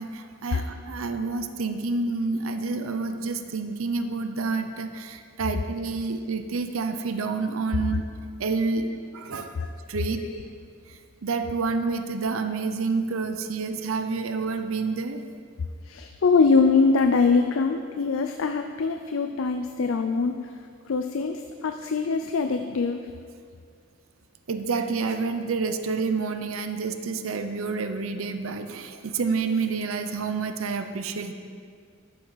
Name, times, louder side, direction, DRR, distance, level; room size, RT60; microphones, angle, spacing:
voice 1, 0.0-8.0 8.4-8.9 9.1-9.5 9.9-10.2 11.2-15.2 24.5-31.3, right 4 dB, 85° right, 7 dB, 0.6 m, -28 dB
voice 2, 8.7-9.0 9.6-9.7 10.2-10.4 15.9-20.5 20.9-23.1, left 4 dB, 70° left, 7 dB, 0.4 m, -23 dB
12.0 x 7.6 x 4.0 m, 2.2 s
head